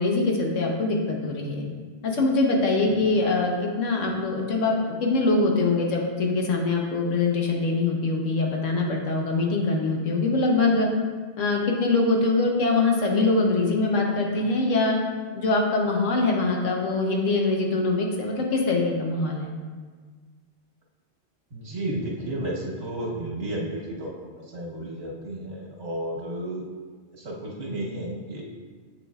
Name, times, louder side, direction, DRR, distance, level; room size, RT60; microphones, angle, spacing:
voice 1, 0.0-1.6 2.0-10.9 11.4-15.0 15.3-19.5, left 3 dB, 85° left, 0 dB, 1.3 m, -23 dB
voice 2, 2.8-3.2 21.5-26.7 27.2-28.4, right 1 dB, 70° right, -3 dB, 1.5 m, -33 dB
7.4 x 7.0 x 2.3 m, 1.5 s
omnidirectional pair, 1.3 m